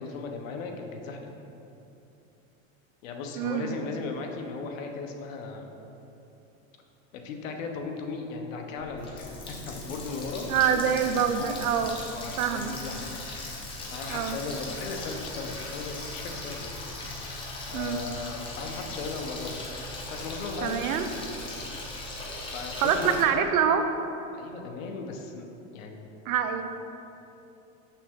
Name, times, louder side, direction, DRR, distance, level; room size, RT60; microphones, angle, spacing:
voice 1, 0.0-1.3 3.0-5.7 7.1-10.8 11.1-11.6 12.1-13.1 13.9-17.3 17.7-19.6 20.1-21.0 22.5-23.5 24.3-25.5 25.7-26.1, left 4 dB, 70° left, 3 dB, 1.0 m, -37 dB
voice 2, 3.4-3.8 10.5-12.0 12.4-12.7 14.1-14.4 17.7-18.0 20.6-21.1 22.8-23.8 26.3-26.6, right 8 dB, 85° right, 8 dB, 0.7 m, -25 dB
Water tap faucet, 8.8-23.2, left 2 dB, 15° left, 0.7 m, -38 dB
7.0 x 5.8 x 3.6 m, 2.9 s
supercardioid pair, 155°, 41 cm